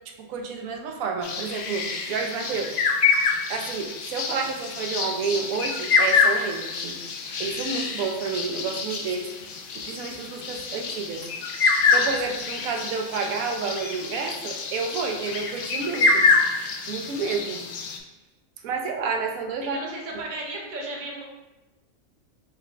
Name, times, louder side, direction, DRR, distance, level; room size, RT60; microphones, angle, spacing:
voice 1, 0.3-2.8 3.5-7.0 7.4-9.5 9.7-11.3 11.9-16.3 16.9-17.6 18.6-19.8, right 5 dB, 90° right, 3 dB, 1.0 m, -30 dB
sound 1, 1.2-18.0, left 4 dB, 70° left, 0.5 m, -26 dB
voice 2, 19.7-21.2, right 2 dB, 45° right, -1 dB, 0.8 m, -34 dB
4.8 x 2.3 x 3.2 m, 1.0 s
omnidirectional pair, 1.4 m